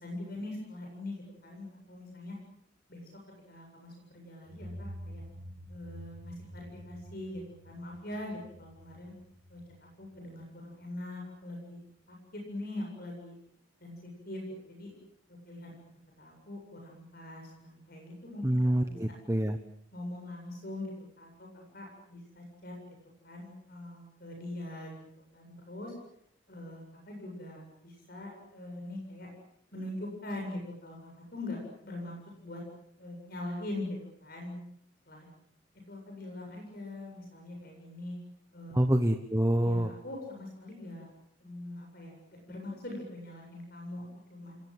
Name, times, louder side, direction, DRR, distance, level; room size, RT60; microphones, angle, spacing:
voice 1, 0.0-2.4 2.9-3.2 3.5-5.2 5.7-9.1 9.5-11.8 12.1-13.3 13.8-14.9 15.4-15.8 16.2-19.0 19.9-23.0 23.2-24.9 25.3-25.9 26.5-29.3 29.7-32.6 33.0-34.6 35.1-35.3 35.9-38.2 38.5-38.8 39.6-41.1 41.4-44.6, left 1 dB, 50° left, 1 dB, 7.9 m, -42 dB
sound 1, 4.5-11.0, equal, 75° right, 7.1 m, -49 dB
voice 2, 18.4-19.6 38.7-39.9, right 1 dB, 15° right, 7 dB, 1.1 m, -26 dB
28.0 x 21.5 x 8.1 m, 0.70 s
head